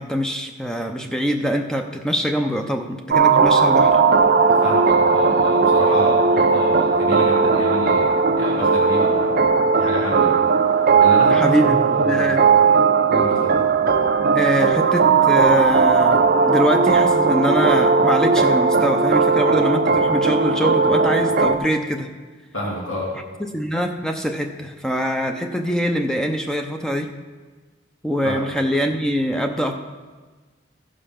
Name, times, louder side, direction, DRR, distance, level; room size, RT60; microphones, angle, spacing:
voice 1, 0.0-4.0 11.3-12.4 14.3-22.1 23.5-27.1 28.0-29.7, equal, 5° left, 4 dB, 0.6 m, -23 dB
sound 1, 3.1-21.6, right 5 dB, 50° right, 0.5 m, -17 dB
voice 2, 4.5-8.1 8.4-9.3 9.7-12.4 13.1-13.6 22.5-23.1 28.2-28.4, equal, 90° left, -4 dB, 2.4 m, -28 dB
15.0 x 5.1 x 5.7 m, 1.4 s
head